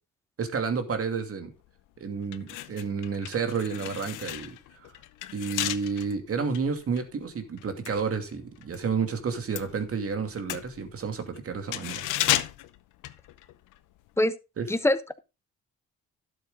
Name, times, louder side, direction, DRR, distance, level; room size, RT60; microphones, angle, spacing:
voice 1, 0.4-1.5 2.0-4.6 4.8-4.9 5.3-12.1 14.6-14.7, right 5 dB, 50° right, 2.5 m, -30 dB
sound 1, 1.6-1.8 2.2-8.8 9.1-13.8 14.1-14.2, left 14 dB, 85° left, 0.8 m, -34 dB
voice 2, 14.7-15.2, left 1 dB, 10° left, 1.0 m, -24 dB
12.0 x 7.8 x 3.8 m
cardioid pair, 90°, 30 cm